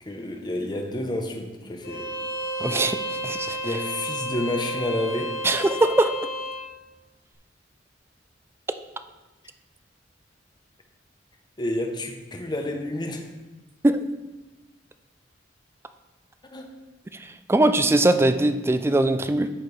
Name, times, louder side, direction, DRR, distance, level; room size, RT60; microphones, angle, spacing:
voice 1, 0.0-2.1 3.6-5.4 11.6-13.3 16.5-16.8, left 1 dB, 25° left, 3 dB, 0.8 m, -30 dB
Bowed string instrument, 1.8-6.7, equal, 55° left, 1.0 m, -31 dB
voice 2, 2.6-3.6 5.4-6.1 13.8-14.0 17.2-19.5, right 2 dB, 15° right, 10 dB, 0.3 m, -21 dB
13.0 x 4.3 x 3.3 m, 1.2 s
head